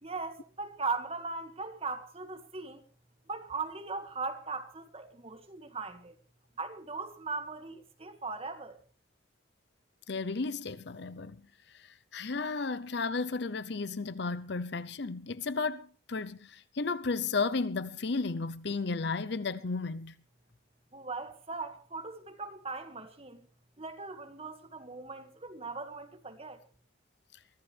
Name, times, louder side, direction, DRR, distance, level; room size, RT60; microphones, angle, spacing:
voice 1, 0.0-2.8 3.3-6.1 6.6-8.8 20.9-23.5 23.8-26.6, right 4 dB, 30° right, 1.9 m, -39 dB
voice 2, 10.1-11.4 11.7-20.2, left 4 dB, 55° left, 0.7 m, -33 dB
23.5 x 15.0 x 3.4 m
head